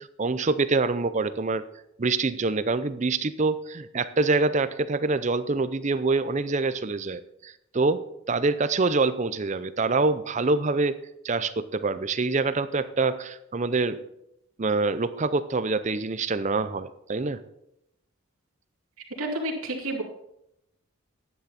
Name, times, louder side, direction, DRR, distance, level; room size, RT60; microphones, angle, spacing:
voice 1, 0.2-1.6 2.0-11.0 11.2-14.0 14.6-17.4, right 3 dB, 35° right, 13 dB, 0.5 m, -25 dB
voice 2, 19.2-20.0, right 1 dB, 85° right, -2 dB, 2.7 m, -29 dB
11.5 x 9.3 x 4.2 m, 0.80 s
head